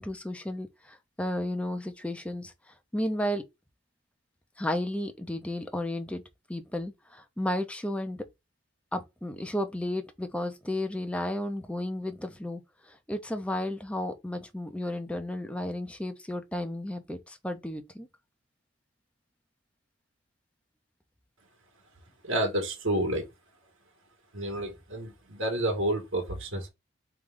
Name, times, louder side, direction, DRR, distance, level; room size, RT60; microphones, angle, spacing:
voice 1, 0.0-2.5 2.9-3.4 4.6-6.2 6.5-8.2 8.9-12.6 12.9-18.1, left 1 dB, 5° left, 0.6 m, -33 dB
voice 2, 22.2-23.2 24.3-26.7, right 1 dB, 75° right, 1.7 m, -29 dB
3.7 x 3.5 x 3.6 m
head